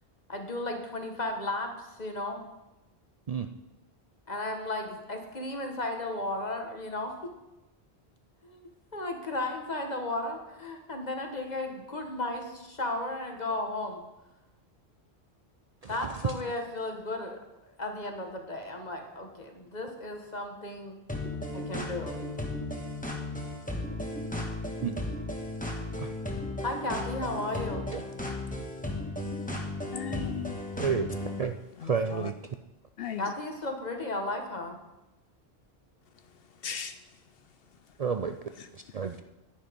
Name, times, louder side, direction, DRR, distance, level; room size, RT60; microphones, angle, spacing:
voice 1, 0.3-2.4 4.3-7.1 8.4-14.0 15.9-17.4 17.8-21.0 21.5-22.2 26.6-27.9 33.2-34.8, left 2 dB, 40° left, 4 dB, 1.6 m, -34 dB
voice 2, 15.8-16.4 24.8-25.0 26.0-26.1 27.9-28.1 30.8-31.1 31.4-31.5 31.8-32.3 38.0-38.4 38.7-39.2, right 6 dB, 50° right, 7 dB, 0.5 m, -30 dB
sound 1, 21.1-31.4, left 2 dB, 10° left, 1.5 m, -35 dB
voice 3, 29.9-30.6 31.8-32.3 33.0-33.3 36.4-37.0 38.6-38.7, left 7 dB, 70° left, 11 dB, 0.7 m, -37 dB
10.0 x 10.0 x 5.2 m, 0.99 s
omnidirectional pair, 1.1 m